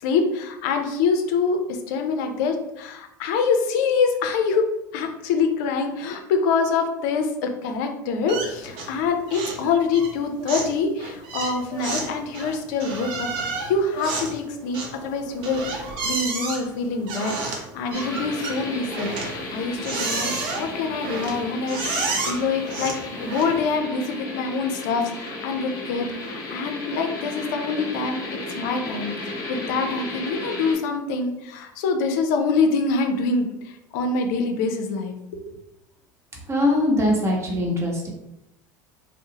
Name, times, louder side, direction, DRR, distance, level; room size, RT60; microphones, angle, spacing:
voice 1, 0.0-4.6 4.9-28.2 28.5-35.2 35.5-35.6, left 4 dB, 70° left, 5 dB, 0.4 m, -25 dB
sound 1, 8.3-9.0 9.3-9.7 9.9-23.7, right 3 dB, 60° right, 0.7 m, -31 dB
sound 2, 17.9-30.7, left 2 dB, 40° left, 0.8 m, -34 dB
voice 2, 36.5-38.1, left 1 dB, 25° right, -2 dB, 1.0 m, -21 dB
2.6 x 2.0 x 2.7 m, 0.85 s
hypercardioid pair, 80°, 10 cm